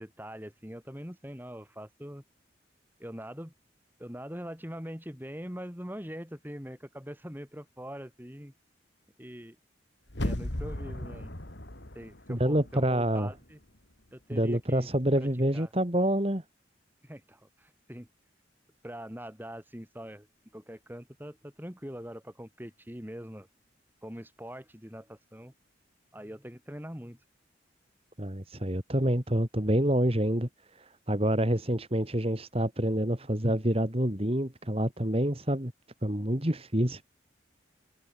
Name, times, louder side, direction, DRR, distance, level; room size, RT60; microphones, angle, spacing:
voice 1, 0.0-2.2 3.0-3.5 4.0-8.5 9.2-9.6 10.2-11.4 11.9-13.6 14.1-14.9 15.2-15.3 15.5-15.7 17.0-18.1 18.8-20.3 20.5-23.5 24.0-25.5 26.1-27.2, equal, 10° right, 5.7 m, -43 dB
sound 1, 10.1-13.0 13.4-13.5, left 1 dB, 70° left, 3.3 m, -36 dB
voice 2, 12.3-13.3 14.3-16.4 28.2-35.7 36.0-37.0, right 1 dB, 30° right, 2.8 m, -27 dB
head